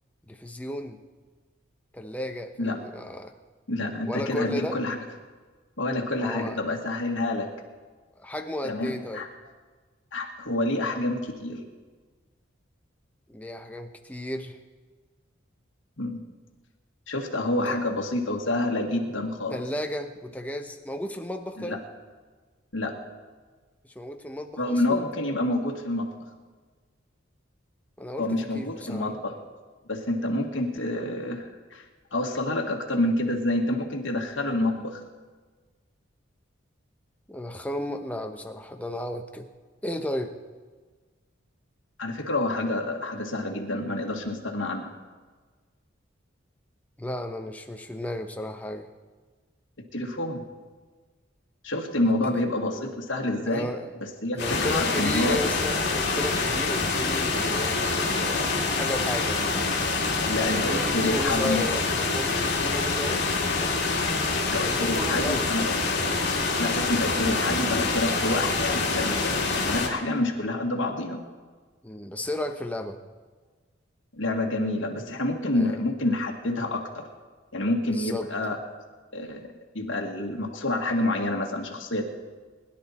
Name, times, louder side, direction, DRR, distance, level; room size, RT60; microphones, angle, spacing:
voice 1, 0.3-1.0 1.9-3.3 4.0-4.8 6.2-6.6 8.2-9.3 13.3-14.6 17.4-17.8 19.5-21.8 23.8-25.1 28.0-29.1 37.3-39.5 39.8-40.3 47.0-48.9 52.2-52.4 53.5-53.9 54.4-59.7 60.4-64.0 64.5-65.5 69.7-70.1 71.8-73.0 75.5-75.8 77.8-78.5, left 1 dB, 5° left, 5 dB, 0.9 m, -34 dB
voice 2, 3.7-5.0 5.8-7.5 8.6-9.3 10.1-11.6 16.0-16.2 17.1-19.6 21.6-21.8 22.7-23.0 24.6-26.1 28.2-29.3 29.9-31.8 32.1-35.0 42.0-44.9 49.9-50.4 51.6-53.7 54.0-55.4 60.3-61.7 64.5-65.7 66.0-66.2 66.6-71.2 74.1-77.1 77.5-78.6 79.1-82.0, left 1 dB, 70° left, -1 dB, 1.8 m, -28 dB
sound 1, 54.4-69.9, left 3 dB, 55° left, 2.7 m, -26 dB
21.5 x 11.0 x 4.3 m, 1.4 s
head